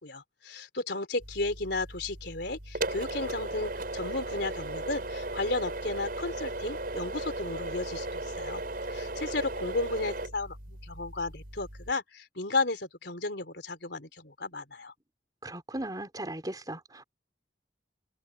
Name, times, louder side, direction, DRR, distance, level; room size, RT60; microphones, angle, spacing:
voice 1, 0.0-8.6 8.9-14.9, left 2 dB, 60° left, 4.1 m, -34 dB
sound 1, 1.2-11.9, right 2 dB, 50° right, 6.9 m, -36 dB
voice 2, 15.4-17.0, right 1 dB, 20° right, 4.2 m, -37 dB
head